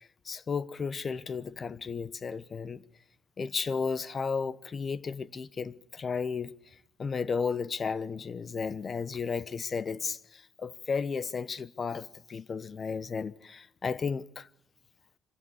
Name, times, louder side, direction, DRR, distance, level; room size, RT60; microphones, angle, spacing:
voice 1, 0.3-2.8 3.4-6.5 7.0-14.5, left 5 dB, 40° left, 0.9 m, -33 dB
25.0 x 16.0 x 9.9 m
cardioid pair, 90°, 0 cm